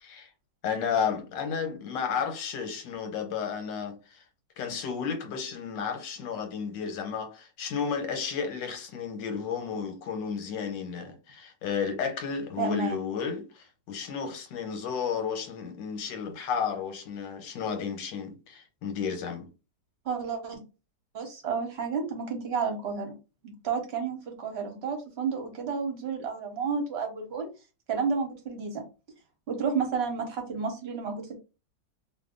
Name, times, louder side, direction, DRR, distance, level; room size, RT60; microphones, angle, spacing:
voice 1, 0.6-4.2 4.6-19.5, left 6 dB, 85° left, 1.4 m, -32 dB
voice 2, 12.6-13.0 20.0-20.6 21.1-23.1 23.4-27.5 27.9-28.8 29.5-31.4, right 5 dB, 45° right, 0.9 m, -31 dB
2.6 x 2.5 x 3.6 m
omnidirectional pair, 1.9 m